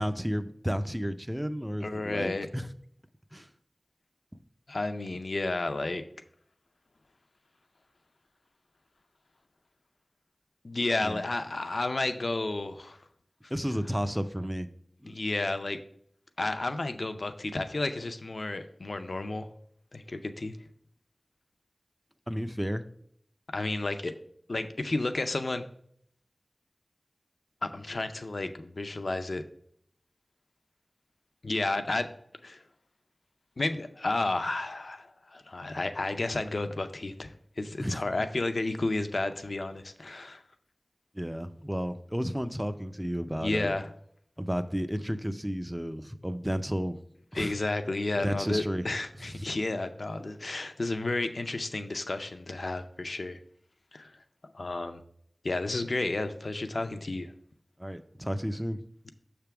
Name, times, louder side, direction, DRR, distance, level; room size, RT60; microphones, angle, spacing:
voice 1, 0.0-2.7 3.3-3.5 11.0-11.2 13.5-14.7 15.0-15.1 22.3-22.9 37.8-38.0 41.1-43.7 44.4-47.0 47.3-47.5 48.2-48.9 49.2-49.5 57.8-58.8, equal, 5° right, 10 dB, 0.5 m, -32 dB
voice 2, 1.8-2.5 4.7-6.0 10.6-13.0 15.0-15.8 16.4-19.5 19.9-20.5 23.5-24.1 24.5-25.6 27.6-29.4 31.4-32.1 32.4-32.6 33.6-40.4 43.4-43.9 47.3-53.4 53.9-54.1 54.5-55.0 55.4-57.3, left 2 dB, 80° left, 8 dB, 0.5 m, -32 dB
6.8 x 3.4 x 5.8 m, 0.67 s
wide cardioid pair, 40°, 0 cm